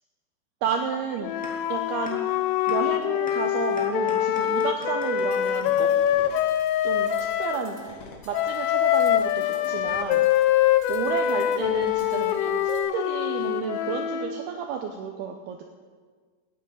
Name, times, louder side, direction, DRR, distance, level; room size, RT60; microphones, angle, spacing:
voice 1, 0.6-1.3 1.7-2.2 2.7-5.9 6.8-7.1 7.4-7.8 8.3-10.3 10.9-15.6, right 7 dB, 90° right, 4 dB, 2.2 m, -31 dB
Wind instrument woodwind instrument, 1.2-7.6 8.3-14.4, left 11 dB, 85° left, 3.2 m, -24 dB
sound 1, 1.4-1.5 2.0-2.1 2.7-2.8 3.3-3.4 3.8-6.7, equal, 5° left, 0.8 m, -44 dB
sound 2, 5.3-12.8, left 3 dB, 55° left, 1.7 m, -47 dB
14.5 x 9.4 x 9.0 m, 1.5 s
omnidirectional pair, 5.6 m